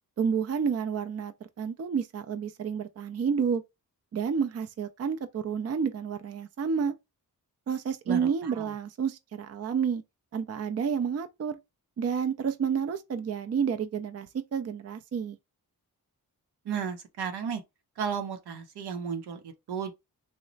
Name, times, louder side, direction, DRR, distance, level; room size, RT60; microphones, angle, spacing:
voice 1, 0.2-3.6 4.1-6.9 7.7-10.0 10.3-11.6 12.0-15.4, right 6 dB, 40° right, 0.5 m, -30 dB
voice 2, 8.1-8.7 16.6-17.6 18.0-19.9, right 7 dB, 85° right, 0.7 m, -34 dB
3.0 x 2.1 x 3.8 m
cardioid pair, 65°, 38 cm